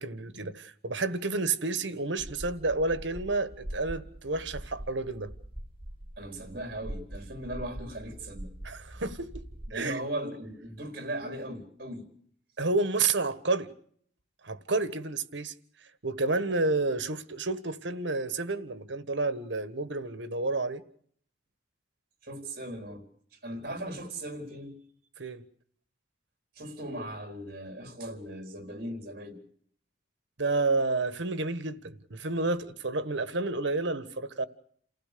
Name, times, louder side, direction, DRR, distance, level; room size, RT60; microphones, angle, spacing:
voice 1, 0.0-5.3 8.6-9.4 9.7-10.0 12.6-13.7 14.4-15.5 16.0-20.8 25.2-25.4 30.4-34.4, right 3 dB, 85° right, 1.5 m, -30 dB
sound 1, 2.2-9.7, right 1 dB, 30° right, 1.9 m, -43 dB
voice 2, 6.2-8.5 9.7-12.1 22.2-23.0 23.4-24.8 26.5-29.4, right 1 dB, 50° right, 4.3 m, -38 dB
29.0 x 16.0 x 6.9 m
head